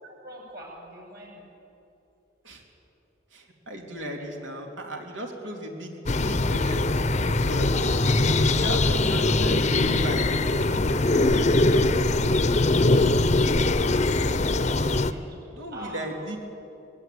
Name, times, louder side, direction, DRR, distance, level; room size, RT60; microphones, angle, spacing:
voice 1, 0.0-1.4 4.2-4.4 10.7-13.7 14.1-15.4 15.7-16.0, equal, 55° right, -1 dB, 7.6 m, -45 dB
voice 2, 3.3-7.7 8.3-10.7 15.5-16.4, equal, 85° right, 1 dB, 3.4 m, -36 dB
sound 1, 6.1-15.1, left 2 dB, 35° left, 0.7 m, -22 dB
21.5 x 17.5 x 9.5 m, 2.9 s
head